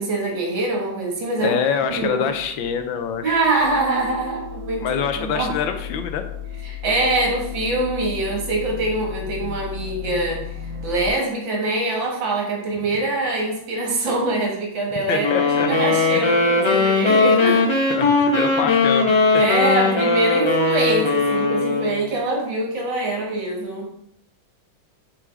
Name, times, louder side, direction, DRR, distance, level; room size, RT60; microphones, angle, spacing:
voice 1, 0.0-2.3 3.2-5.5 6.6-17.8 18.3-18.4 19.4-23.9, right 2 dB, 75° right, 0 dB, 2.4 m, -24 dB
voice 2, 1.4-3.4 4.8-6.2 15.1-15.7 16.1-16.3 17.9-19.1, left 7 dB, 80° left, 7 dB, 1.5 m, -25 dB
sound 1, 1.9-11.1, left 6 dB, 90° right, 1.6 m, -35 dB
sound 2, 15.2-22.0, left 3 dB, 30° left, 0.5 m, -19 dB
6.1 x 4.7 x 4.6 m, 0.74 s
omnidirectional pair, 2.1 m